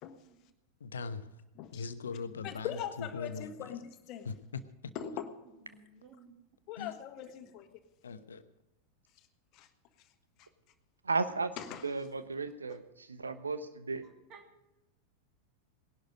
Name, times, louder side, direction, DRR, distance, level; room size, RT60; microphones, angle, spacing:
voice 1, 0.8-1.4 1.7-3.7 4.2-4.9 6.8-6.9 8.0-8.4, left 5 dB, 70° left, 1.0 m, -41 dB
voice 2, 1.6-1.9 2.4-4.3 4.9-5.3 6.7-7.8 9.5-9.7 10.4-10.5 11.6-11.9, left 9 dB, 40° left, 1.5 m, -41 dB
voice 3, 5.4-6.3 7.4-7.6 14.0-14.4, right 5 dB, 35° right, 3.0 m, -57 dB
voice 4, 11.0-11.5 11.8-14.0, right 4 dB, 75° right, 1.1 m, -34 dB
19.0 x 11.5 x 5.1 m
figure-of-eight pair, 90°, 0 cm